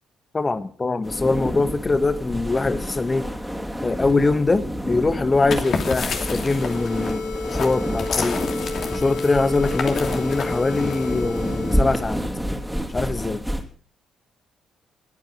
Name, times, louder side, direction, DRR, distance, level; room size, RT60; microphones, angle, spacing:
voice 1, 0.3-3.3 3.8-8.4 8.9-12.2 12.9-13.4, left 3 dB, 30° left, 11 dB, 1.7 m, -23 dB
sound 1, 1.0-13.6, equal, ahead, 3.4 m, -29 dB
sound 2, 5.3-11.4, left 5 dB, 50° left, 2.8 m, -31 dB
sound 3, 6.2-12.3, left 4 dB, 70° left, 2.8 m, -32 dB
22.0 x 9.1 x 6.4 m, 0.44 s
hypercardioid pair, 45°, 0 cm